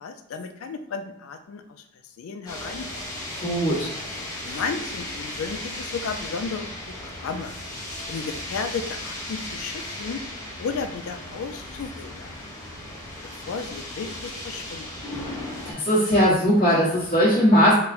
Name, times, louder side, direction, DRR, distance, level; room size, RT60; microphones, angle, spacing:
voice 1, 0.0-1.6 2.2-3.1 4.2-7.6 8.1-10.2 10.6-12.3 13.2-14.9, left 5 dB, 80° left, 8 dB, 0.3 m, -33 dB
sound 1, 2.5-15.7, left 1 dB, 15° left, 1.0 m, -36 dB
voice 2, 3.4-3.9 15.6-17.7, equal, 40° left, -11 dB, 1.2 m, -19 dB
3.9 x 2.1 x 4.2 m, 0.78 s
head